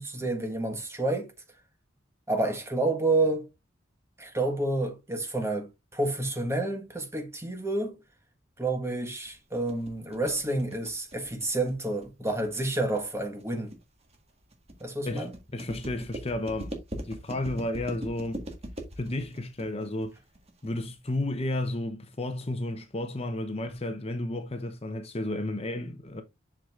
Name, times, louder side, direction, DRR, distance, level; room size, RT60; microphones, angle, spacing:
voice 1, 0.0-1.3 2.3-3.5 4.2-8.0 8.6-13.8 14.8-15.3, right 2 dB, 15° right, 1.4 m, -29 dB
sound 1, 9.3-21.2, right 1 dB, 35° right, 1.6 m, -41 dB
voice 2, 15.5-16.7 17.0-18.4 19.0-20.1 20.6-26.2, left 1 dB, 30° left, 0.8 m, -32 dB
7.5 x 6.5 x 2.4 m
head